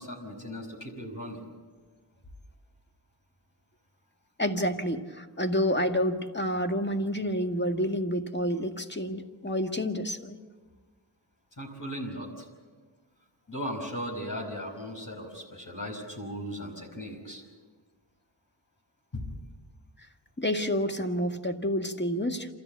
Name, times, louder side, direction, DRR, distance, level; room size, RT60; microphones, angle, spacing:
voice 1, 0.0-1.4 11.6-12.5 13.5-17.4 19.1-19.3, equal, 45° left, 1 dB, 5.4 m, -37 dB
voice 2, 4.4-10.4 20.4-22.5, equal, 25° left, 6 dB, 1.8 m, -29 dB
28.0 x 14.0 x 8.6 m, 1.4 s
cardioid pair, 45°, 46 cm